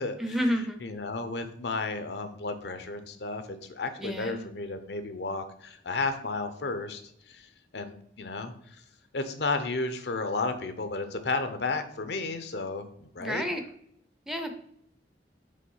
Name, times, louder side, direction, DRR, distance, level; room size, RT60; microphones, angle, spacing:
voice 1, 0.2-0.9 4.0-4.5 13.2-13.6 14.3-14.5, equal, ahead, 6 dB, 0.6 m, -30 dB
voice 2, 0.8-7.0 7.3-7.5 7.7-8.5 9.1-13.4, left 3 dB, 70° left, 9 dB, 0.7 m, -33 dB
5.4 x 3.5 x 5.5 m, 0.68 s
head